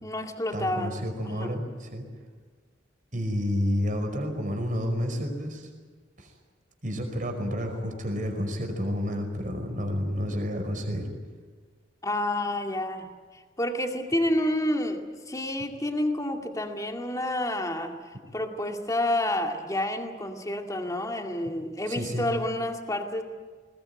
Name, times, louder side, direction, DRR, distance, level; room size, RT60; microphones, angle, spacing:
voice 1, 0.0-1.5 12.0-13.1 13.6-18.0 18.3-23.2, left 1 dB, 20° left, 3 dB, 2.3 m, -29 dB
voice 2, 0.5-2.0 3.1-5.7 6.2-6.3 6.8-11.1 21.9-22.2, equal, 45° right, 4 dB, 5.3 m, -30 dB
21.0 x 20.5 x 9.7 m, 1.5 s
head